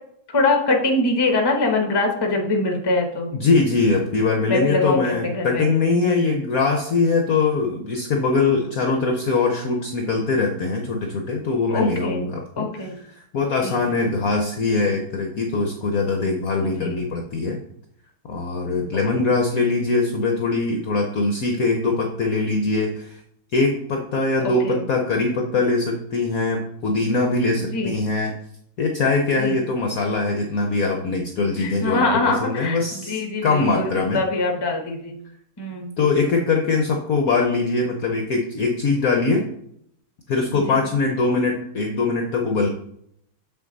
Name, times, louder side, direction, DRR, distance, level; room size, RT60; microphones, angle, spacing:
voice 1, 0.3-3.3 4.5-5.7 6.0-6.3 11.7-12.2 12.6-13.0 13.6-13.8 16.6-17.0 24.6-24.8 27.7-27.9 29.4-29.6 31.6-35.2 35.6-35.9 40.7-40.8, left 2 dB, 20° left, 3 dB, 0.8 m, -23 dB
voice 2, 3.3-12.7 13.1-17.6 18.3-23.2 23.5-28.4 28.8-34.2 36.0-39.5 40.3-42.7, left 3 dB, 60° left, 2 dB, 1.0 m, -22 dB
6.8 x 6.1 x 4.0 m, 0.72 s
omnidirectional pair, 2.2 m